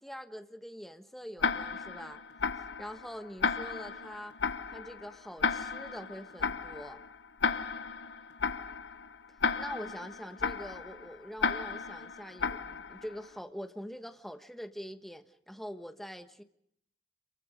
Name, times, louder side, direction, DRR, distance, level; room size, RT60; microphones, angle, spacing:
voice 1, 0.0-2.2 2.8-4.4 4.7-7.0 9.6-16.4, equal, ahead, 7 dB, 1.2 m, -44 dB
Tick-tock, 1.4-13.3, left 5 dB, 75° left, 1.1 m, -34 dB
27.0 x 23.5 x 5.2 m, 0.72 s
head